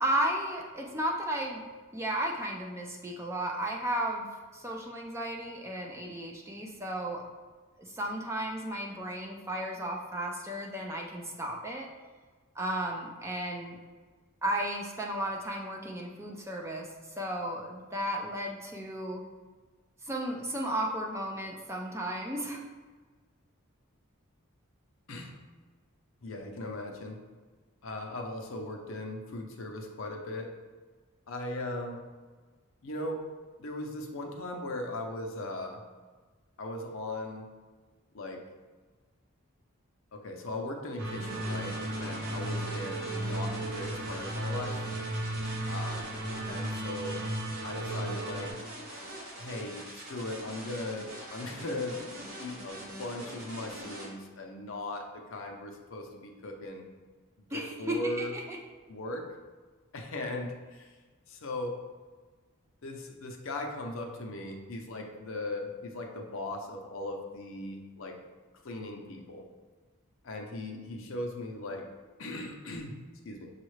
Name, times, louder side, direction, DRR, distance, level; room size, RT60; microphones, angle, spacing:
voice 1, 0.0-1.6 1.9-4.3 4.5-7.2 7.8-11.9 12.6-13.8 14.4-16.9 17.2-19.2 20.0-22.6 57.5-58.6, right 1 dB, 10° right, 0 dB, 0.4 m, -34 dB
voice 2, 26.2-27.2 27.8-30.5 31.3-32.0 32.8-33.2 33.6-35.8 36.6-37.5 38.1-38.4 40.1-44.7 45.7-46.1 46.5-47.2 47.6-48.5 49.4-52.0 52.4-56.9 57.5-58.3 58.9-59.2 59.9-60.9 61.3-61.7 62.8-68.2 68.6-69.4 70.2-71.8 72.2-72.9 73.2-73.5, left 2 dB, 65° left, 3 dB, 0.6 m, -38 dB
sound 1, 41.0-48.5, right 1 dB, 75° right, 1.0 m, -35 dB
sound 2, 41.2-54.1, right 1 dB, 50° right, 1.3 m, -44 dB
6.2 x 2.4 x 3.1 m, 1.4 s
head